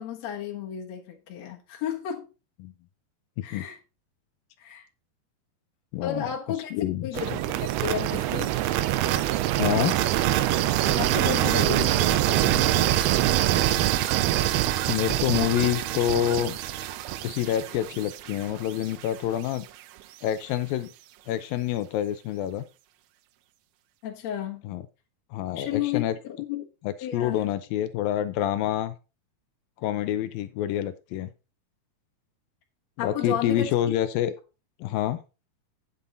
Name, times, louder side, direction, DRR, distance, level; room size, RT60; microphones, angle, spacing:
voice 1, 0.0-2.3 3.4-3.8 4.6-4.9 6.0-6.7 7.0-7.3 7.6-8.6 10.9-13.0 24.0-24.7 25.6-26.1 26.4-26.6 27.0-27.5 33.0-33.7, left 9 dB, 60° left, 1.9 m, -32 dB
voice 2, 5.9-6.3 6.7-7.4 9.6-10.0 14.9-16.6 17.2-19.7 20.2-20.9 21.3-22.6 24.6-24.8 25.3-26.1 26.8-28.9 29.8-31.3 33.0-34.3 34.8-35.2, left 11 dB, 80° left, 2.1 m, -27 dB
sound 1, 7.1-19.1, right 14 dB, 80° right, 2.5 m, -25 dB
9.9 x 7.1 x 3.9 m
omnidirectional pair, 4.7 m